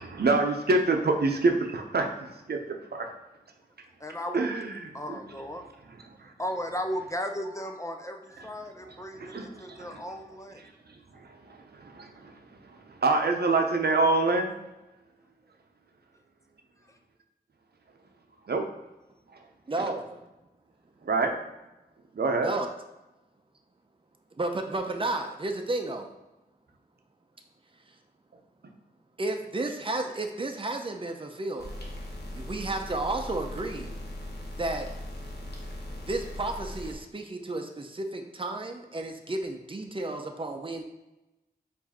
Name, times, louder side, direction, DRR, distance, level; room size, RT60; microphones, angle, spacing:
voice 1, 0.0-2.6 2.9-3.1 4.3-5.2 6.2-6.3 8.9-10.0 10.6-10.7 11.1-12.3 12.7-14.5 18.5-18.6 21.0-21.3 22.1-22.5, right 3 dB, 75° right, 3 dB, 0.7 m, -27 dB
voice 2, 4.0-4.5 4.9-5.6 6.4-10.6, equal, 20° left, 4 dB, 0.5 m, -35 dB
voice 3, 19.7-20.2 22.4-22.7 24.4-26.1 29.2-31.7 32.3-33.9 34.6-34.9 36.1-40.8, right 2 dB, 30° right, 4 dB, 0.6 m, -32 dB
sound 1, 31.6-37.0, left 1 dB, 90° left, 0.8 m, -39 dB
4.7 x 2.7 x 4.2 m, 1.0 s
wide cardioid pair, 55°, 16 cm